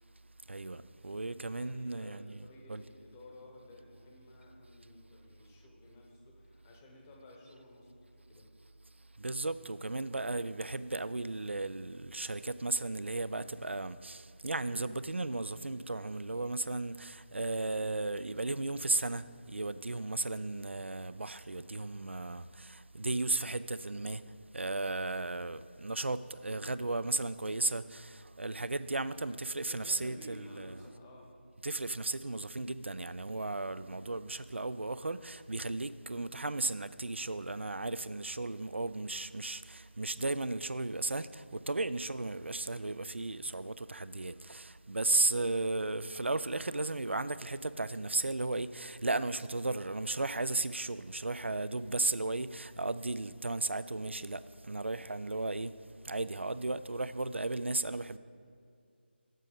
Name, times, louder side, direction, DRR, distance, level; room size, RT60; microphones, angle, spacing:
voice 1, 0.5-2.8 9.2-24.2 24.5-30.7 31.6-55.7 56.0-58.2, right 2 dB, 80° right, 0.3 m, -35 dB
voice 2, 1.5-8.5 29.7-31.3 33.7-34.0, left 1 dB, 15° left, 0.8 m, -54 dB
7.6 x 6.1 x 5.0 m
figure-of-eight pair, 160°, 6 cm